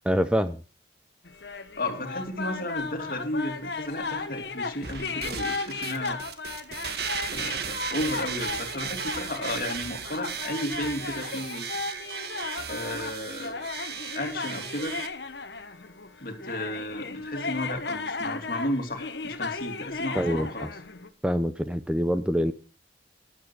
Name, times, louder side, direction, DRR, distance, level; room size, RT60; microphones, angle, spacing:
voice 1, 0.1-0.6 20.2-20.5 21.2-22.5, equal, 5° right, 10 dB, 0.6 m, -25 dB
sound 1, 1.2-21.1, left 4 dB, 75° left, 1.4 m, -36 dB
voice 2, 1.8-6.2 7.3-11.7 12.7-13.7 14.1-15.0 16.2-20.7, left 1 dB, 55° left, 4 dB, 2.9 m, -33 dB
sound 2, 4.8-15.1, right 6 dB, 60° right, 1.5 m, -36 dB
12.5 x 12.0 x 4.7 m, 0.34 s
head